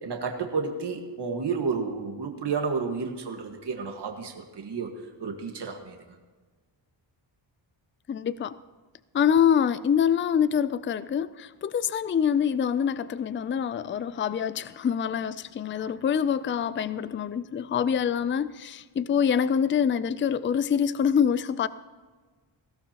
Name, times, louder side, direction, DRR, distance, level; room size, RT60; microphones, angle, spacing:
voice 1, 0.0-4.9 5.2-6.0 15.8-15.9, right 5 dB, 60° right, 1.6 m, -31 dB
voice 2, 8.1-8.6 9.1-21.7, left 8 dB, 30° left, 0.3 m, -25 dB
19.5 x 16.0 x 2.9 m
wide cardioid pair, 135°, 47 cm